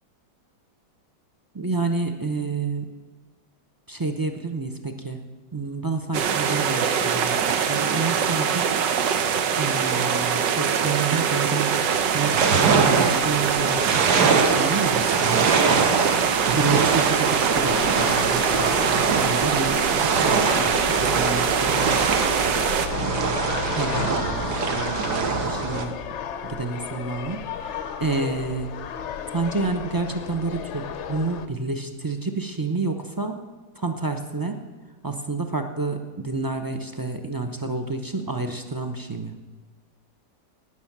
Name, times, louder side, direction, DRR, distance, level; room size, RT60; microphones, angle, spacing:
voice 1, 1.5-2.9 3.9-5.2 5.5-7.4 7.7-8.8 9.6-11.7 12.1-15.5 16.5-22.2 23.0-25.9 26.4-27.4 27.7-28.7 29.3-33.4 33.8-34.6 35.0-39.4, right 3 dB, 30° right, 6 dB, 0.3 m, -29 dB
sound 1, 6.1-22.9, right 7 dB, 85° right, 1.6 m, -23 dB
sound 2, 11.9-25.8, right 5 dB, 65° right, 1.7 m, -24 dB
sound 3, 17.5-31.5, left 7 dB, 60° left, 0.7 m, -33 dB
18.5 x 6.3 x 7.3 m, 1.3 s
omnidirectional pair, 1.9 m